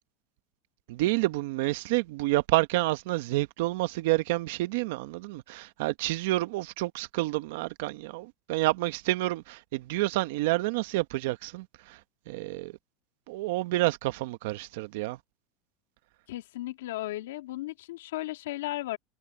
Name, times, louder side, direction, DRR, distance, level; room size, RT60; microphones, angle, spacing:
voice 1, 0.9-12.0 12.3-12.7 13.3-15.2, right 18 dB, 75° right, 0.9 m, -29 dB
voice 2, 16.3-19.0, left 16 dB, 85° left, 2.2 m, -35 dB
supercardioid pair, 130°, 0 cm